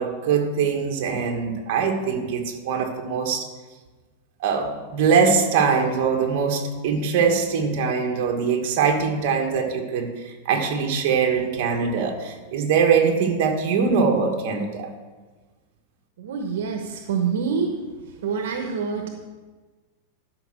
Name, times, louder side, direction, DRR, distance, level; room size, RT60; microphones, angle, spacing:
voice 1, 0.0-3.5 4.4-14.9, right 6 dB, 50° right, 3 dB, 1.7 m, -22 dB
voice 2, 16.2-17.7 18.1-19.3, right 6 dB, 80° right, 4 dB, 1.0 m, -26 dB
12.0 x 5.5 x 6.2 m, 1.3 s
supercardioid pair, 150°, 0 cm